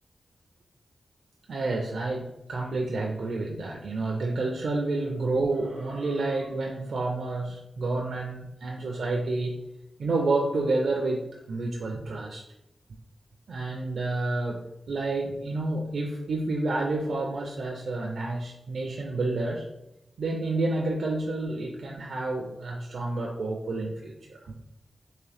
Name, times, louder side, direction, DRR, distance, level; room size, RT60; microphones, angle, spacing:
voice 1, 1.5-9.6 10.0-12.4 13.5-19.6 20.2-24.5, right 2 dB, 85° right, -1 dB, 0.4 m, -29 dB
3.7 x 2.6 x 3.3 m, 0.85 s
cardioid pair, 65°, 0 cm